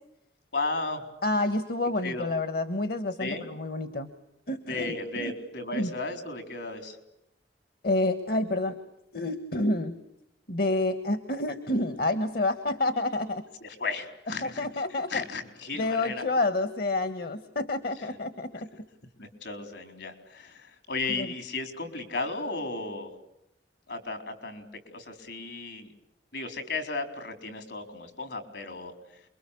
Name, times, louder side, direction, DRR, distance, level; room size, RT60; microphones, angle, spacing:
voice 1, 0.5-1.0 2.0-2.3 3.2-3.5 4.7-7.0 13.6-16.2 19.2-23.1 23.9-25.9 26.3-28.9, left 3 dB, 75° left, 8 dB, 4.4 m, -35 dB
voice 2, 1.2-4.1 4.5-5.3 5.7-5.9 7.8-8.8 9.1-10.0 10.5-13.4 14.4-15.2 15.8-18.7 21.2-21.3, left 2 dB, 60° left, 11 dB, 1.4 m, -28 dB
28.5 x 23.0 x 8.5 m, 0.81 s
head